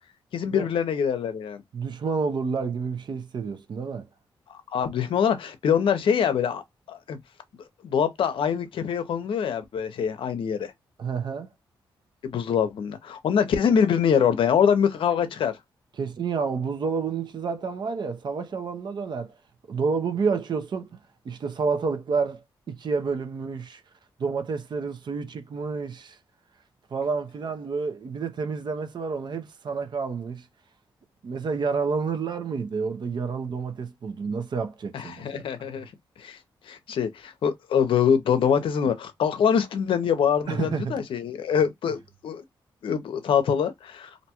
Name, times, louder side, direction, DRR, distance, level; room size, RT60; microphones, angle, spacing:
voice 1, 0.3-1.6 4.7-6.6 6.9-7.2 7.8-10.7 12.2-15.5 34.9-35.9 36.2-36.4 36.7-42.4 42.8-44.3, left 7 dB, 75° left, 0.6 m, -24 dB
voice 2, 1.7-4.1 11.0-11.5 16.0-19.3 19.7-21.0 21.2-23.8 24.2-26.2 26.9-30.5 31.2-35.4 40.5-41.0, right 5 dB, 55° right, 0.6 m, -29 dB
2.6 x 2.2 x 2.8 m
cardioid pair, 80°, 9 cm